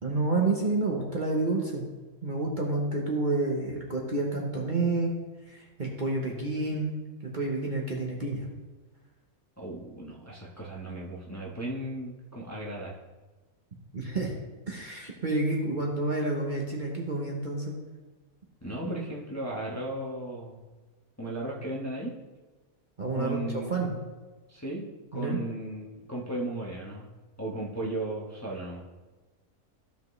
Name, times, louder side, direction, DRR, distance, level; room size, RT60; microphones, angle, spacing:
voice 1, 0.0-1.9 2.2-5.1 5.5-8.5 13.9-14.3 14.7-17.8 23.0-23.4 23.7-23.9 25.1-25.4, right 2 dB, 35° right, -1 dB, 1.2 m, -29 dB
voice 2, 9.6-13.0 18.6-20.6 21.2-22.1 23.1-23.8 24.5-27.1 27.4-28.9, right 1 dB, 10° left, -4 dB, 1.1 m, -36 dB
14.5 x 5.1 x 3.2 m, 1.2 s
omnidirectional pair, 1.5 m